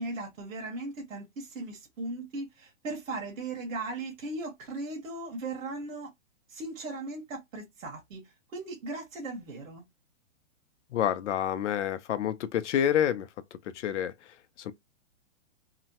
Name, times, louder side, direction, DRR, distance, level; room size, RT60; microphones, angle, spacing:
voice 1, 0.0-6.1 6.5-9.8, right 2 dB, 85° right, 1.1 m, -38 dB
voice 2, 10.9-14.7, left 10 dB, 65° left, 0.6 m, -29 dB
2.8 x 2.1 x 2.8 m
hypercardioid pair, 160°, 39 cm